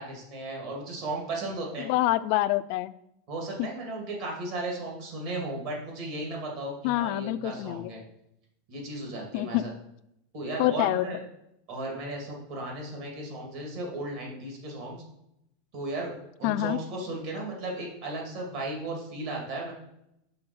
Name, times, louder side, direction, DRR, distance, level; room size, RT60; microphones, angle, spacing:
voice 1, 0.0-1.9 3.3-8.0 8.7-9.7 10.3-11.2 11.7-15.0 15.7-16.1 16.4-19.7, right 2 dB, 55° right, -1 dB, 2.4 m, -35 dB
voice 2, 1.8-2.9 3.6-3.7 6.8-7.9 9.3-9.6 10.6-11.1 16.4-16.8, left 16 dB, 55° left, 15 dB, 0.3 m, -26 dB
5.7 x 3.5 x 5.4 m, 0.81 s
supercardioid pair, 130°, 0 cm